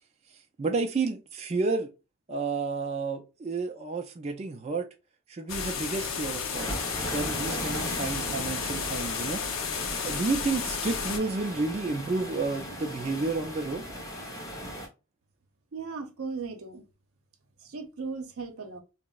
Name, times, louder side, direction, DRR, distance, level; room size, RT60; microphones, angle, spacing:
voice 1, 0.6-1.9 2.3-4.9 5.3-6.7 7.1-9.4 10.0-13.8, right 3 dB, 30° right, 0.3 m, -31 dB
sound 1, 5.5-11.2, left 6 dB, 65° left, 0.5 m, -33 dB
sound 2, 6.5-14.9, equal, 15° left, 0.6 m, -37 dB
voice 2, 15.7-16.8 17.6-18.8, right 4 dB, 80° right, 0.7 m, -37 dB
3.5 x 2.0 x 2.2 m
head